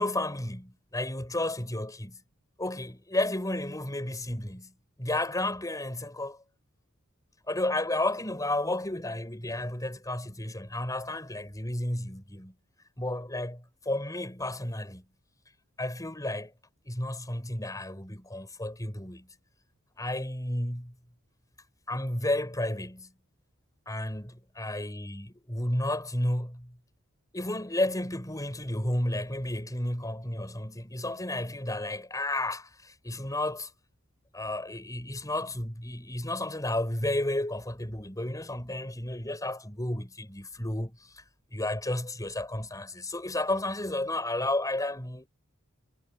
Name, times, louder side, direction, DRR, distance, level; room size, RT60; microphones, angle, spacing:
voice 1, 0.0-2.2 2.6-4.7 5.0-6.4 7.5-12.5 13.0-15.0 15.8-16.5 16.9-19.3 20.0-20.9 21.9-23.1 23.9-26.8 27.3-33.7 34.3-41.0 41.5-45.3, left 1 dB, 15° left, 6.0 m, -32 dB
head